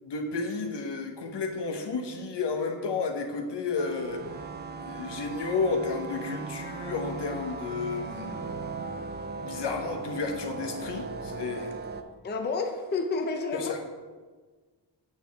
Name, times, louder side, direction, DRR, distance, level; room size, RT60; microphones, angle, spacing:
voice 1, 0.0-4.2 4.8-8.6 9.4-11.7 13.5-13.8, left 4 dB, 70° left, 4 dB, 1.1 m, -32 dB
sound 1, 3.8-12.0, right 4 dB, 25° right, 0.3 m, -38 dB
voice 2, 12.2-13.8, left 3 dB, 25° left, 4 dB, 0.5 m, -30 dB
8.8 x 6.6 x 3.4 m, 1.4 s
wide cardioid pair, 175°, 43 cm